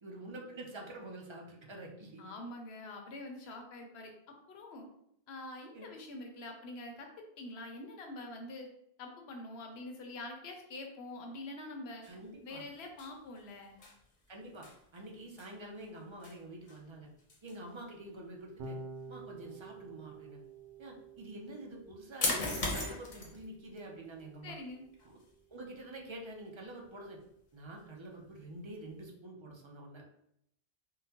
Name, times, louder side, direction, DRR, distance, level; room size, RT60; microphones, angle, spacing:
voice 1, 0.0-2.3 5.7-5.9 12.0-12.6 14.3-14.7 14.9-17.1 17.4-18.8 19.1-20.4 20.8-24.6 25.0-25.2 25.5-27.2 27.5-30.1, right 1 dB, 35° right, 0 dB, 0.5 m, -47 dB
voice 2, 2.2-4.9 5.3-8.7 9.0-12.0 12.4-13.8 24.4-24.8, left 2 dB, 85° left, 3 dB, 0.9 m, -45 dB
sound 1, 12.0-29.0, left 2 dB, 50° left, 0.8 m, -43 dB
Electric guitar / Bass guitar, 18.6-25.0, right 3 dB, 80° right, 0.8 m, -50 dB
3.7 x 2.1 x 2.8 m, 0.75 s
omnidirectional pair, 1.1 m